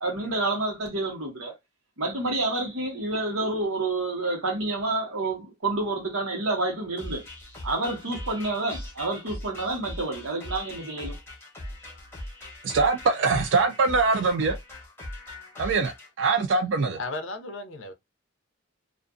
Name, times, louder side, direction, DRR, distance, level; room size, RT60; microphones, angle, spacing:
voice 1, 0.0-1.5 2.0-7.2 7.6-11.2, right 2 dB, 85° right, 1.1 m, -29 dB
sound 1, 7.0-16.1, left 1 dB, 10° left, 0.8 m, -40 dB
voice 2, 12.6-14.6 15.6-17.0, right 4 dB, 60° right, 0.3 m, -23 dB
voice 3, 17.0-17.9, left 2 dB, 65° left, 0.5 m, -35 dB
2.5 x 2.4 x 2.4 m
head